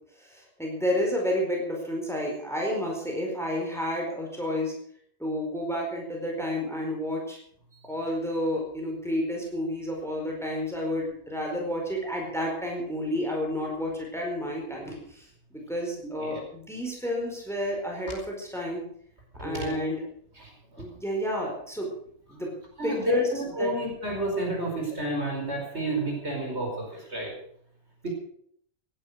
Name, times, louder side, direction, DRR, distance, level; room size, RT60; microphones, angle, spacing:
voice 1, 0.2-4.7 5.2-7.4 7.9-15.3 15.5-18.8 19.4-20.0 20.8-21.9 22.3-22.5 22.8-23.2 23.6-23.7, left 1 dB, ahead, 0 dB, 4.6 m, -30 dB
voice 2, 16.0-16.4 19.4-19.8 20.4-20.8 22.8-27.3 28.0-28.1, right 1 dB, 50° right, 0 dB, 5.3 m, -30 dB
17.0 x 11.0 x 6.5 m, 0.64 s
omnidirectional pair, 1.5 m